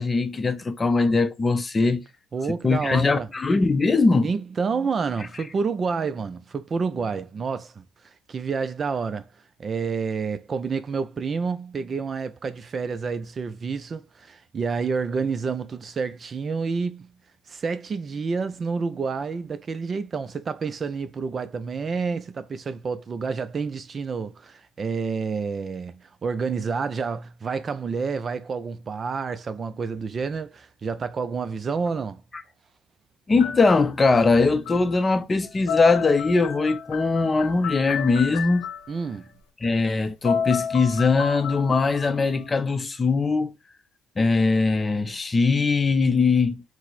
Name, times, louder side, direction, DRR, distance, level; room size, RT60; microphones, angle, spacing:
voice 1, 0.0-2.0 2.6-4.3 33.3-38.7 39.6-43.5 44.2-46.6, left 4 dB, 25° left, 0.5 m, -21 dB
voice 2, 2.3-3.3 4.2-7.8 8.3-9.3 9.6-17.1 17.5-32.2 38.9-39.2, right 5 dB, 35° right, 0.4 m, -29 dB
sound 1, 33.4-35.2 35.4-39.0 39.9-40.0 40.2-42.4, left 7 dB, 85° left, 0.9 m, -32 dB
4.5 x 2.1 x 4.0 m
cardioid pair, 100°, 0 cm